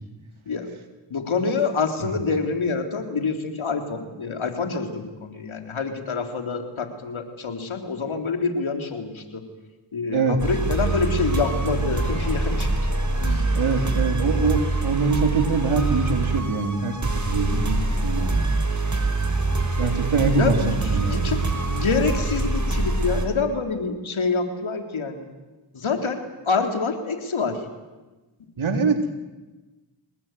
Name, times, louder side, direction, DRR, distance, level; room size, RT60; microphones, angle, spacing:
voice 1, 1.1-9.4 9.9-12.7 13.2-13.5 13.9-14.0 20.4-25.3 25.7-26.2 26.5-27.6, left 4 dB, 75° left, 5 dB, 3.8 m, -26 dB
sound 1, 10.4-23.3, right 3 dB, 35° right, 5.7 m, -24 dB
voice 2, 13.6-17.0 17.3-18.4 19.8-20.6 20.9-21.3 28.6-29.0, right 4 dB, 75° right, 6 dB, 3.7 m, -24 dB
26.0 x 20.0 x 9.3 m, 1.2 s
cardioid pair, 40°, 48 cm